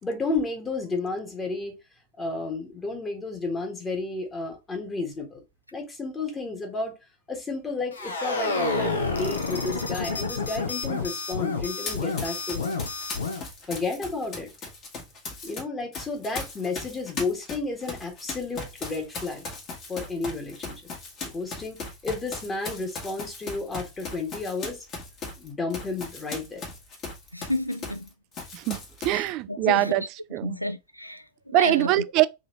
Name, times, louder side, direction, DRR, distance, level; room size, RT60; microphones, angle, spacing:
voice 1, 0.0-1.8 2.2-5.4 5.7-6.9 7.3-12.7 13.7-14.5 15.4-19.5 19.9-20.8 21.2-21.8 22.0-24.9 25.4-26.6, left 3 dB, 15° left, 1.6 m, -32 dB
sound 1, 7.9-13.4, left 3 dB, 70° left, 0.8 m, -29 dB
Run, 11.8-15.6 15.9-28.1 28.3-29.3, left 3 dB, 35° left, 1.7 m, -38 dB
voice 2, 27.3-28.1 29.1-30.1 30.4-31.9, left 1 dB, 90° left, 0.4 m, -31 dB
voice 3, 28.5-30.0 30.3-30.6 31.5-32.3, right 16 dB, 40° right, 0.3 m, -23 dB
3.8 x 3.3 x 3.1 m
figure-of-eight pair, 90°, 0 cm